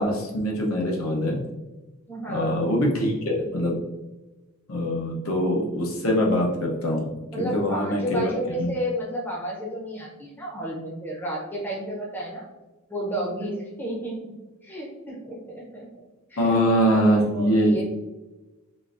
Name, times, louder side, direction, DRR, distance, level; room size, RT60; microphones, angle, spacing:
voice 1, 0.0-1.4 2.3-3.8 4.7-7.1 7.4-8.2 8.6-8.7 16.4-17.8, equal, 75° left, -1 dB, 0.8 m, -23 dB
voice 2, 2.1-2.6 7.3-12.5 12.9-14.4 14.6-16.5 16.9-17.8, equal, 10° left, -4 dB, 0.6 m, -32 dB
3.8 x 2.5 x 2.5 m, 1.1 s
head